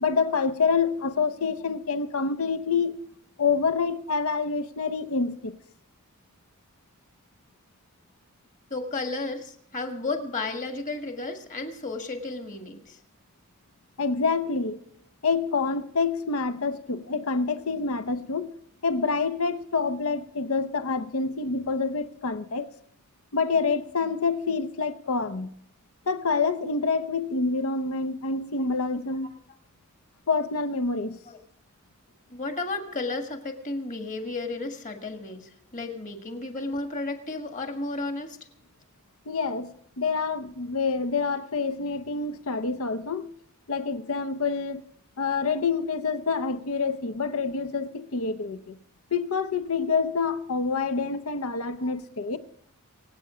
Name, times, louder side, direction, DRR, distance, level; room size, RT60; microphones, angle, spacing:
voice 1, 0.0-3.0 3.4-5.6 14.0-14.8 15.2-18.5 18.8-22.7 23.3-25.5 26.1-29.3 30.3-31.2 39.3-43.3 43.7-44.8 45.2-48.8 49.1-52.4, left 4 dB, 80° left, 0.8 m, -27 dB
voice 2, 8.7-13.0 28.3-28.4 31.3-31.4 32.3-38.4 51.8-51.9, left 3 dB, 35° left, 1.7 m, -33 dB
24.5 x 8.6 x 5.0 m
head